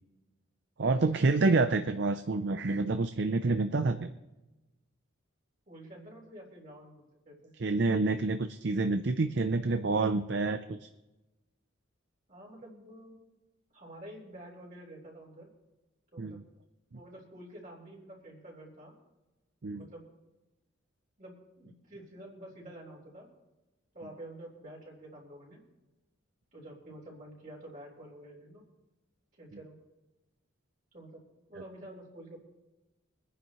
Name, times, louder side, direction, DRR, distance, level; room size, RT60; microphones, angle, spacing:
voice 1, 0.8-4.1 7.6-10.8 16.2-16.4 19.6-19.9, right 3 dB, 55° right, 9 dB, 0.5 m, -28 dB
voice 2, 5.7-7.5 12.3-13.2 13.7-15.5 16.1-16.4 16.9-18.9 19.7-20.1 21.2-23.3 23.9-25.6 26.5-28.6 29.3-29.8 30.9-32.4, right 1 dB, 40° right, -3 dB, 3.8 m, -49 dB
24.0 x 10.0 x 3.1 m, 1.0 s
head